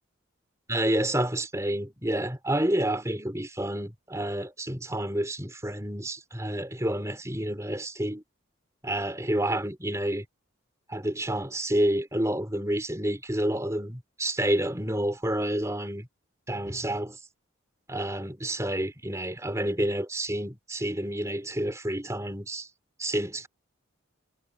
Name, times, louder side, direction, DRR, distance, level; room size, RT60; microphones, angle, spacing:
voice 1, 0.7-8.2 8.8-10.2 10.9-16.1 16.5-17.2 17.9-22.7 23.0-23.5, right 1 dB, 15° right, 3.9 m, -29 dB
head